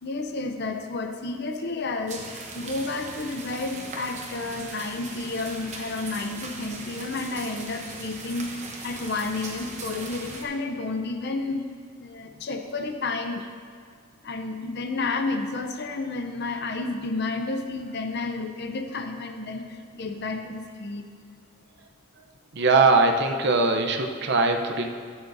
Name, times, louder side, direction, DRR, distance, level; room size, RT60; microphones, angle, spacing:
voice 1, 0.0-2.3 2.5-8.5 8.8-11.6 12.0-13.4 14.2-21.0, left 3 dB, 50° left, 6 dB, 0.6 m, -31 dB
sound 1, 2.1-10.4, right 3 dB, 35° right, 1.0 m, -39 dB
voice 2, 22.5-24.9, right 3 dB, 50° right, 5 dB, 0.7 m, -21 dB
13.0 x 8.8 x 2.7 m, 2.2 s
head